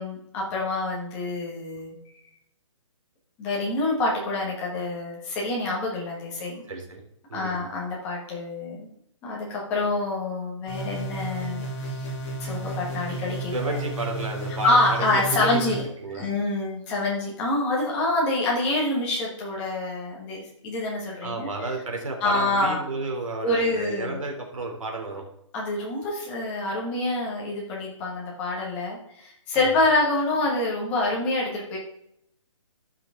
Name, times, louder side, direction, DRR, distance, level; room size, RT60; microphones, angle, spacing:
voice 1, 0.0-2.0 3.4-6.6 7.3-8.9 9.2-11.6 12.4-13.8 14.6-15.8 16.2-21.5 22.2-22.8 23.4-24.2 25.5-31.8, left 2 dB, 10° left, -4 dB, 1.2 m, -26 dB
voice 2, 6.7-7.0 7.3-7.6 13.5-15.7 16.0-16.3 21.2-25.2 29.5-29.8, right 2 dB, 75° right, 1 dB, 3.1 m, -32 dB
sound 1, 10.7-15.8, right 2 dB, 25° left, 2.5 m, -33 dB
13.5 x 5.8 x 3.6 m, 0.75 s
hypercardioid pair, 180°, 17 cm